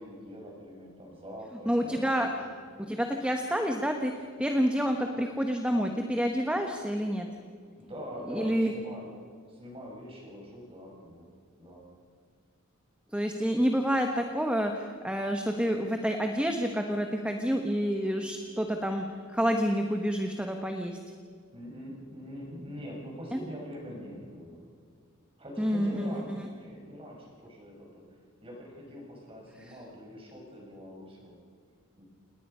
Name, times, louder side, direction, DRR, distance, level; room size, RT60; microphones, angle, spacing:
voice 1, 0.0-2.5 7.8-9.1 9.5-11.3 11.6-11.9 21.5-24.6 25.4-28.0 28.4-31.3 32.0-32.1, equal, 25° right, -1 dB, 6.0 m, -44 dB
voice 2, 1.6-2.3 2.8-7.3 8.3-8.7 13.1-21.0 23.3-23.4 25.6-26.5 29.6-29.8, equal, 5° right, 4 dB, 1.1 m, -28 dB
28.5 x 19.5 x 5.6 m, 2.1 s
head